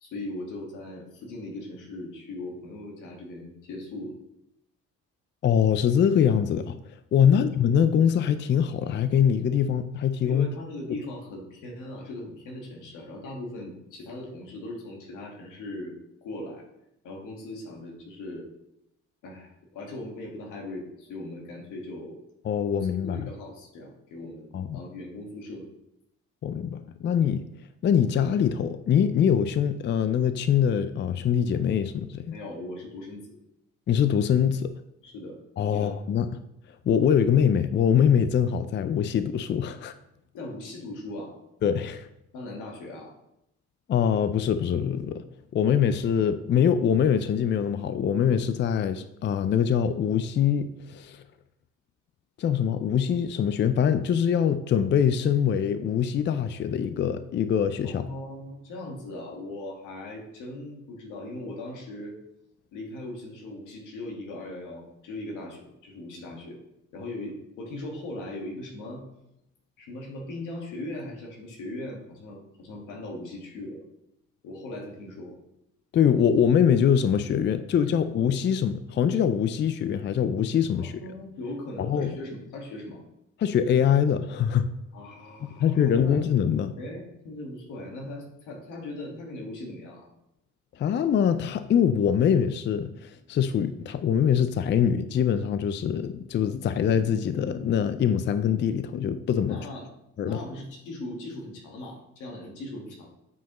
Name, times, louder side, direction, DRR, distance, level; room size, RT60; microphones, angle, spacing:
voice 1, 0.0-4.2 7.3-7.5 10.2-15.9 16.2-16.6 17.0-18.5 19.2-22.2 22.7-25.7 32.3-33.4 35.0-35.3 35.7-36.0 40.3-41.3 42.3-43.1 57.8-62.2 62.7-66.6 66.9-69.0 69.8-73.8 74.4-75.3 77.8-77.9 80.7-83.0 84.9-86.2 86.8-90.1 99.5-99.9 100.2-103.1, left 1 dB, 90° left, 0 dB, 1.6 m, -39 dB
voice 2, 5.4-6.8 7.1-10.5 22.5-23.2 24.5-24.8 26.4-27.5 27.8-32.3 33.9-34.7 35.6-36.3 36.9-39.9 41.6-42.1 43.9-45.2 45.5-51.2 52.4-58.1 75.9-80.9 81.8-82.1 83.4-84.7 85.6-86.7 90.8-99.6 100.2-100.4, left 8 dB, 40° left, 11 dB, 0.4 m, -23 dB
8.1 x 4.7 x 3.0 m, 0.82 s
cardioid pair, 90°, 30 cm